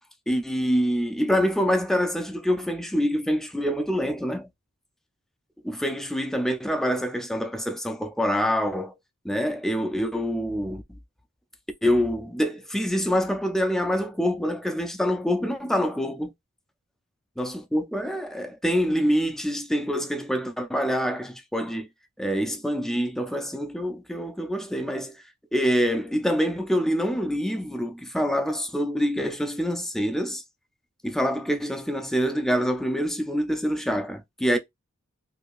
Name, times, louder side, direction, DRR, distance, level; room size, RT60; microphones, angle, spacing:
voice 1, 0.3-4.5 5.6-9.0 9.2-10.8 11.8-16.3 17.4-21.9 22.2-25.2 25.5-30.4 31.0-34.6, equal, ahead, 0.4 m, -26 dB
3.2 x 2.7 x 2.5 m
head